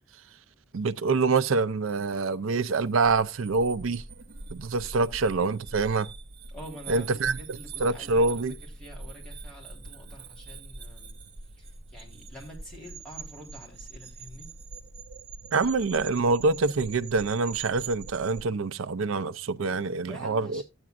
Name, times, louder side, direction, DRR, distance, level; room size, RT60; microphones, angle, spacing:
voice 1, 0.7-4.0 4.5-6.1 6.9-8.5 15.5-20.6, right 3 dB, 85° right, 0.5 m, -26 dB
sound 1, 2.8-18.5, right 4 dB, 55° right, 0.8 m, -43 dB
voice 2, 6.5-11.2 11.5-14.5 19.8-20.6, equal, 5° left, 3.4 m, -47 dB
13.0 x 8.8 x 2.4 m
head